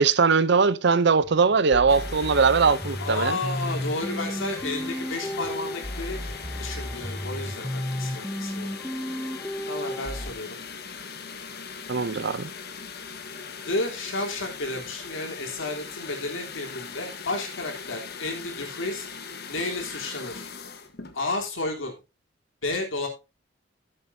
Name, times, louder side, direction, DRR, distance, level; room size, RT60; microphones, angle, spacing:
voice 1, 0.0-3.4 11.9-12.5, right 5 dB, 60° right, 0.6 m, -20 dB
sound 1, 0.9-7.6, left 1 dB, 25° right, 2.4 m, -49 dB
sound 2, 1.7-10.3, equal, 5° left, 0.5 m, -33 dB
sound 3, 1.9-21.2, left 5 dB, 55° left, 1.3 m, -40 dB
voice 2, 3.0-6.2 6.6-8.8 9.7-10.6 13.7-19.1 19.5-20.5 21.1-21.9 22.6-23.1, left 2 dB, 80° left, 3.5 m, -32 dB
16.0 x 7.7 x 2.7 m
head